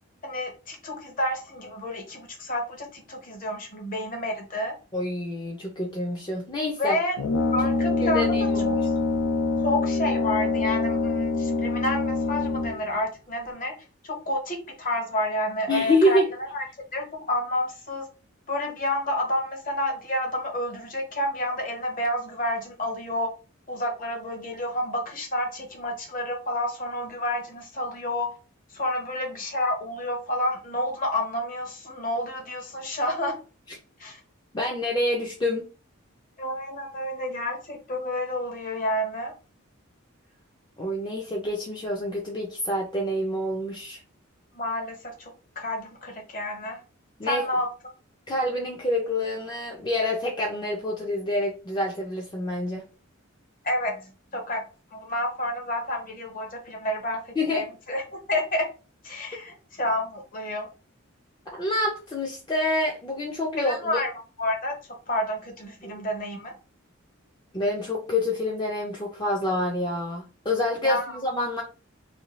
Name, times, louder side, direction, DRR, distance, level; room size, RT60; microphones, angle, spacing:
voice 1, 0.2-4.7 6.8-7.2 7.5-8.8 9.6-13.7 14.0-16.6 16.9-18.1 18.5-23.3 23.7-28.3 28.7-33.3 34.0-34.2 36.4-39.3 44.6-46.8 47.2-47.7 53.6-54.0 54.3-54.6 54.9-58.7 59.0-60.7 63.5-64.1 64.4-64.8 65.1-66.5 70.8-71.2, left 1 dB, 40° left, 2 dB, 0.8 m, -29 dB
voice 2, 4.9-7.0 8.0-8.8 15.7-16.3 34.5-35.7 40.8-44.0 47.2-47.5 48.3-52.8 57.4-57.7 61.5-64.0 65.8-66.0 67.5-71.6, left 1 dB, 20° left, -1 dB, 0.4 m, -27 dB
Brass instrument, 7.2-12.9, left 3 dB, 85° left, 0.4 m, -25 dB
2.6 x 2.3 x 3.0 m, 0.34 s
head